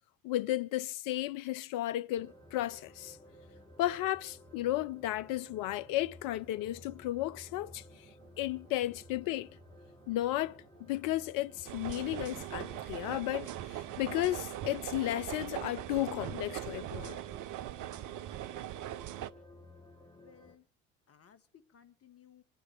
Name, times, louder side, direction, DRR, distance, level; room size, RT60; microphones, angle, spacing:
voice 1, 0.2-3.2 3.8-7.8 8.4-9.5 10.1-17.2, left 15 dB, 60° left, 0.8 m, -34 dB
sound 1, 2.2-20.6, left 1 dB, 15° left, 4.1 m, -55 dB
sound 2, 7.3-12.8, right 7 dB, 85° right, 2.5 m, -64 dB
sound 3, 11.7-19.3, right 13 dB, 55° right, 0.9 m, -40 dB
voice 2, 20.1-20.7 21.1-22.4, left 8 dB, 40° left, 1.8 m, -60 dB
27.0 x 9.4 x 3.4 m
hypercardioid pair, 65°, 37 cm